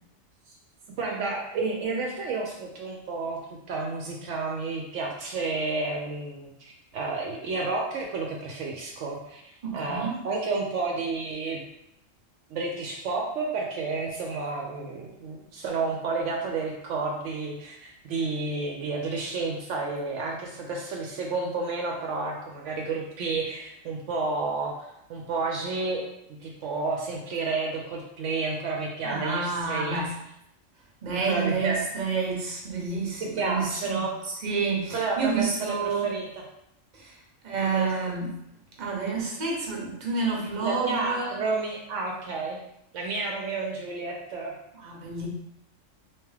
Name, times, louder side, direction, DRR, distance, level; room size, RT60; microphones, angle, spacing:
voice 1, 1.0-3.4 3.7-11.6 12.5-26.0 26.4-30.0 31.1-31.8 33.2-34.2 34.9-36.4 37.6-37.9 40.6-42.6 42.9-44.5, right 3 dB, 70° right, 0 dB, 0.9 m, -31 dB
voice 2, 9.6-10.1 29.0-30.1 31.0-36.1 36.9-37.2 37.4-38.3 38.8-41.4 44.7-45.3, right 4 dB, 40° right, -2 dB, 0.8 m, -29 dB
3.5 x 2.9 x 3.2 m, 0.81 s
omnidirectional pair, 1.3 m